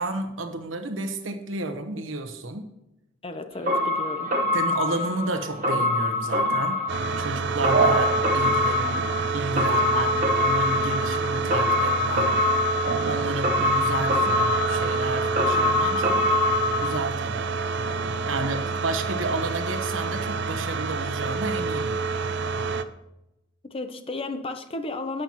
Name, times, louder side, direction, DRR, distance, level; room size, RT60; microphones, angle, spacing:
voice 1, 0.0-2.7 4.5-6.8 7.1-9.1 9.3-12.4 13.0-14.3 14.7-16.4 16.8-17.5 17.7-22.0, right 2 dB, 90° right, 7 dB, 1.1 m, -31 dB
voice 2, 3.2-4.3 23.6-25.2, left 2 dB, 30° left, 8 dB, 0.8 m, -33 dB
sound 1, 3.7-16.9, left 2 dB, 40° right, 1.3 m, -25 dB
sound 2, 6.9-22.8, right 4 dB, 60° right, 0.5 m, -27 dB
11.5 x 9.0 x 3.0 m, 0.90 s
head